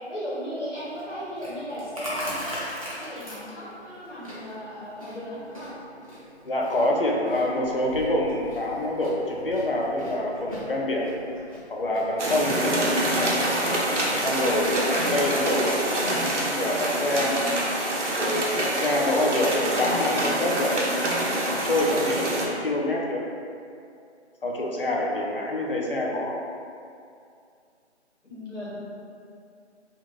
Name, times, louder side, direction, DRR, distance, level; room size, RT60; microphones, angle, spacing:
voice 1, 0.1-2.6 2.9-5.7 28.2-28.8, equal, 90° left, -9 dB, 1.0 m, -36 dB
Chewing mastication, 0.7-16.3, equal, 30° right, 0.5 m, -41 dB
voice 2, 6.5-11.2 11.7-13.3 14.2-17.4 18.2-20.8 21.1-23.2 24.4-26.4, left 1 dB, 55° left, -2 dB, 0.4 m, -26 dB
sound 1, 12.2-22.5, right 1 dB, 85° right, 0.7 m, -26 dB
2.4 x 2.3 x 3.1 m, 2.4 s
figure-of-eight pair, 160°, 35 cm